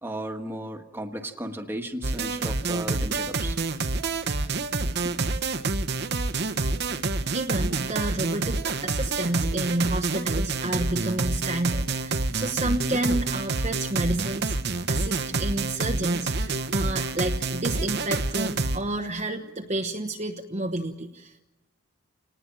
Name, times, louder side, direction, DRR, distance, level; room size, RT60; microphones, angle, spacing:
voice 1, 0.0-3.6 5.0-5.2, right 1 dB, 10° right, 3 dB, 1.6 m, -35 dB
sound 1, 2.0-18.8, right 3 dB, 55° right, 1.1 m, -28 dB
voice 2, 7.3-14.6 14.9-21.4, right 1 dB, 35° right, 4 dB, 1.1 m, -30 dB
27.5 x 19.5 x 7.6 m, 1.1 s
head